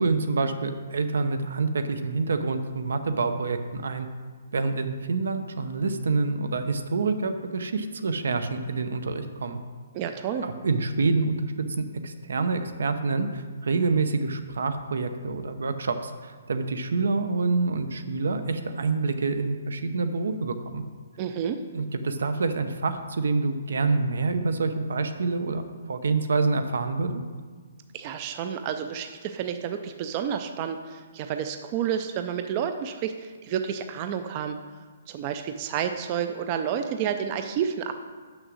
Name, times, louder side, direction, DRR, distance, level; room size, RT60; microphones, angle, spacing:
voice 1, 0.0-4.1 4.5-9.6 10.4-20.8 21.7-27.2, right 3 dB, 85° right, 9 dB, 0.7 m, -27 dB
voice 2, 9.9-10.4 21.2-21.6 27.9-34.6 35.1-37.9, right 8 dB, 25° right, 8 dB, 0.3 m, -30 dB
6.3 x 6.0 x 6.3 m, 1.5 s
hypercardioid pair, 170°, 0 cm